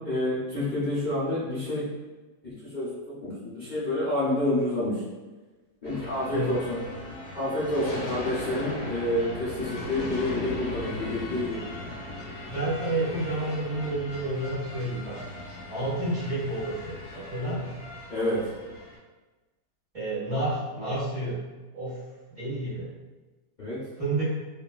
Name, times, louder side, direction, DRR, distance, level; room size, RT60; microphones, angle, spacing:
voice 1, 0.0-1.9 2.4-5.0 5.8-6.8 7.3-11.6 18.1-18.4 23.6-23.8, left 1 dB, 45° left, -11 dB, 0.6 m, -28 dB
sound 1, 5.8-19.0, left 2 dB, 70° left, 1.1 m, -38 dB
voice 2, 12.5-15.2 15.7-17.7 19.9-21.4 21.7-22.0 22.3-22.9 24.0-24.2, right 2 dB, 25° right, -10 dB, 1.0 m, -30 dB
2.7 x 2.4 x 2.2 m, 1.2 s
omnidirectional pair, 1.9 m